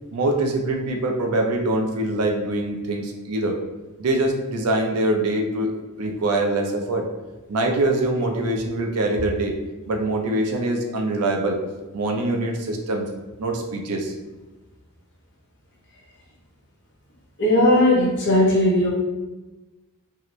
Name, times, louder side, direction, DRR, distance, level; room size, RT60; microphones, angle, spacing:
voice 1, 0.1-3.6 4.0-5.7 6.0-7.1 7.5-9.6 9.9-11.6 11.9-13.0 13.4-14.1, right 2 dB, 85° right, 3 dB, 0.5 m, -23 dB
voice 2, 17.4-18.9, left 1 dB, 55° left, -4 dB, 0.9 m, -17 dB
2.8 x 2.5 x 3.0 m, 1.1 s
head